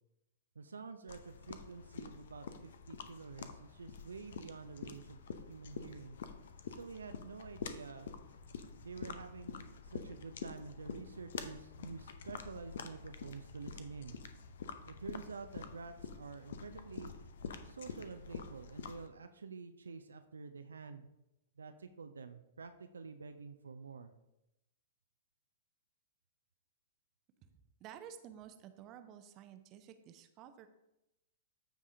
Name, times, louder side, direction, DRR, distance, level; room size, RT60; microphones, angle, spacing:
voice 1, 0.6-6.2 6.7-8.1 8.8-14.2 14.9-17.1 17.6-21.1 21.6-24.1, right 4 dB, 70° right, 8 dB, 0.5 m, -49 dB
sound 1, 1.1-19.1, left 6 dB, 55° left, 0.7 m, -47 dB
voice 2, 27.8-30.7, right 9 dB, 30° right, 9 dB, 0.7 m, -52 dB
14.0 x 4.8 x 2.7 m, 0.90 s
figure-of-eight pair, 105°, 0 cm